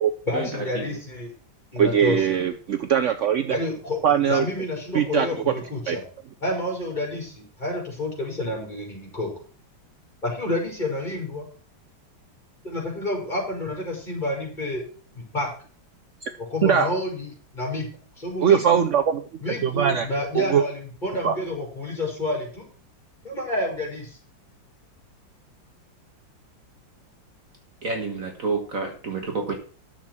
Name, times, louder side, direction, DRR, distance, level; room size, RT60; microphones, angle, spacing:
voice 1, 0.3-1.3 1.7-2.4 3.5-6.0 6.4-9.3 10.2-11.5 12.6-14.8 15.1-15.5 16.4-17.9 18.2-18.9 19.4-22.7 23.2-24.2, left 1 dB, 20° left, -1 dB, 5.1 m, -29 dB
voice 2, 1.8-3.6 4.0-4.5 4.9-5.5 5.9-6.0 16.2-16.3 16.6-16.9 18.4-19.2 19.6-20.1 20.3-20.6 21.2-21.4, right 8 dB, 70° right, 9 dB, 0.7 m, -21 dB
voice 3, 27.8-29.5, right 4 dB, 45° right, 3 dB, 1.7 m, -28 dB
10.5 x 7.4 x 6.0 m, 0.41 s
omnidirectional pair, 2.1 m